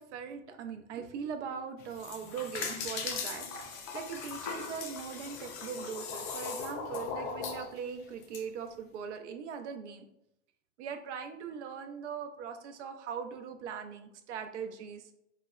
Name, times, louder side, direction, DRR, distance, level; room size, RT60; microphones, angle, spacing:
voice 1, 0.0-10.1 10.8-15.1, right 6 dB, 75° right, 6 dB, 0.6 m, -40 dB
sound 1, 1.8-8.4, left 5 dB, 30° left, 0.4 m, -39 dB
4.0 x 2.1 x 2.3 m, 0.79 s
supercardioid pair, 135°, 35 cm